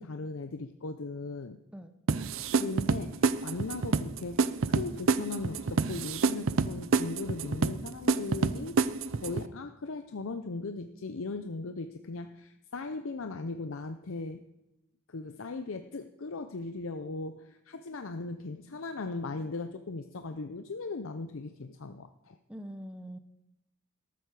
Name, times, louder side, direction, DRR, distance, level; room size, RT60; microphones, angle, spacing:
voice 1, 0.0-1.6 2.6-8.8 9.2-14.4 15.1-22.4, left 3 dB, 65° left, 8 dB, 0.6 m, -38 dB
sound 1, 2.1-9.5, right 4 dB, 65° right, 0.6 m, -28 dB
voice 2, 22.5-23.2, equal, 5° right, 9 dB, 0.7 m, -43 dB
13.5 x 12.5 x 4.9 m, 0.93 s
head